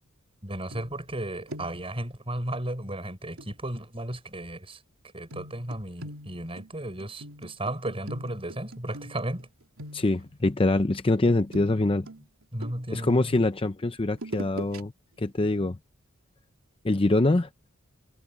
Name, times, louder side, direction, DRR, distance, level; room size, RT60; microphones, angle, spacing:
voice 1, 0.4-4.8 5.1-9.5 12.5-13.4, right 1 dB, 25° right, 6.9 m, -34 dB
sound 1, 0.7-1.2 1.5-2.0 3.4-3.5 5.3-9.4 9.8-10.3 11.3-13.1 14.1-14.8 15.2-15.3, right 1 dB, 80° right, 2.8 m, -42 dB
voice 2, 9.9-12.1 12.9-14.9 15.2-15.8 16.8-17.5, left 2 dB, 25° left, 0.7 m, -24 dB
head